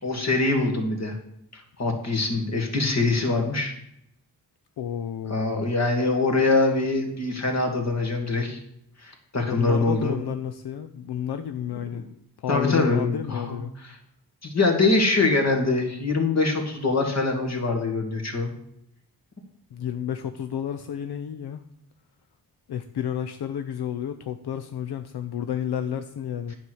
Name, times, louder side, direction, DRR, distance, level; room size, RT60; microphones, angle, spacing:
voice 1, 0.0-1.2 1.5-3.7 5.3-8.6 9.0-10.2 12.5-13.9 14.4-18.5, left 3 dB, 45° left, 3 dB, 2.2 m, -24 dB
voice 2, 4.8-5.7 9.5-12.0 12.4-13.7 19.7-21.6 22.7-26.5, left 9 dB, 80° left, 9 dB, 0.7 m, -31 dB
10.5 x 4.8 x 7.8 m, 0.75 s
wide cardioid pair, 100°, 38 cm